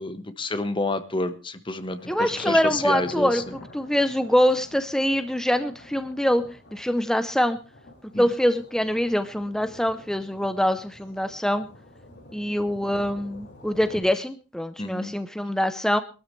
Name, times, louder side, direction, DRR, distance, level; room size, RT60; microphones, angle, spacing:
voice 1, 0.0-3.5 8.1-8.3 14.8-15.1, left 2 dB, 25° left, 10 dB, 1.3 m, -29 dB
Thunder, 1.9-14.0, left 1 dB, 65° left, 6.7 m, -46 dB
voice 2, 2.1-3.4 3.7-6.4 6.7-7.6 8.2-11.7 12.3-16.0, equal, 5° left, 10 dB, 0.7 m, -24 dB
22.5 x 13.0 x 3.3 m, 0.32 s
head